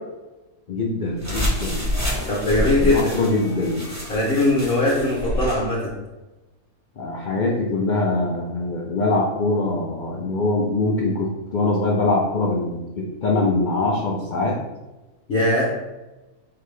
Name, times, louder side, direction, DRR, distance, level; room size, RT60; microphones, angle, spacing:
voice 1, 0.7-2.0 2.8-4.0 7.0-14.6, left 2 dB, 90° left, -2 dB, 0.4 m, -23 dB
sound 1, 1.2-5.6, equal, 20° right, 0.5 m, -27 dB
voice 2, 2.3-3.1 4.1-5.9 15.3-15.7, left 1 dB, 50° left, -4 dB, 0.8 m, -20 dB
4.0 x 2.7 x 3.2 m, 1.1 s
omnidirectional pair, 1.5 m